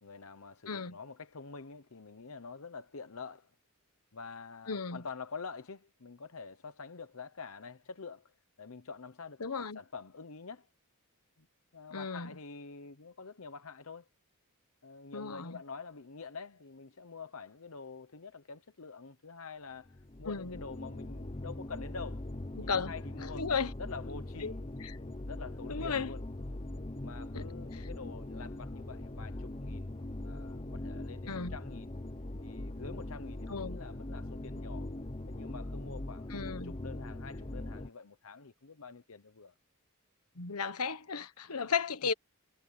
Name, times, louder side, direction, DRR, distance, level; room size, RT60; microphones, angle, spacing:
voice 1, 0.0-3.5 4.1-8.3 8.6-10.7 11.4-11.5 11.7-14.0 14.8-22.2 22.6-23.5 23.8-24.6 25.3-26.2 27.0-29.9 30.2-31.9 32.4-34.9 35.3-39.5, left 4 dB, 70° left, 0.9 m, -47 dB
voice 2, 0.7-1.0 4.7-5.0 9.4-9.8 11.9-12.3 15.1-15.6 20.2-20.6 22.6-22.9 23.3-23.7 24.4-24.5 24.8-25.0 25.7-26.1 27.3-27.4 27.7-27.8 31.3-31.5 33.5-33.8 36.3-36.7 40.4-42.1, left 5 dB, 90° left, 1.3 m, -35 dB
sound 1, 19.9-37.9, left 1 dB, 25° left, 0.9 m, -41 dB
head